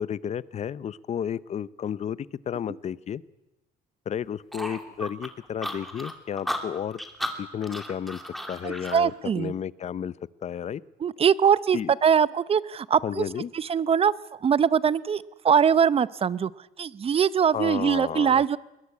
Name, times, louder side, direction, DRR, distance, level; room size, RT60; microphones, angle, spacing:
voice 1, 0.0-3.2 4.1-7.0 7.4-8.2 8.5-10.1 10.4-10.8 11.7-11.9 13.0-13.5 17.5-18.4, left 8 dB, 40° left, 19 dB, 0.8 m, -32 dB
sound 1, 4.5-9.0, equal, ahead, 2.8 m, -34 dB
voice 2, 8.6-9.5 11.0-13.3 13.5-16.5 16.8-18.6, right 7 dB, 35° right, 18 dB, 0.7 m, -22 dB
21.5 x 20.5 x 8.5 m, 0.96 s
cardioid pair, 110°, 17 cm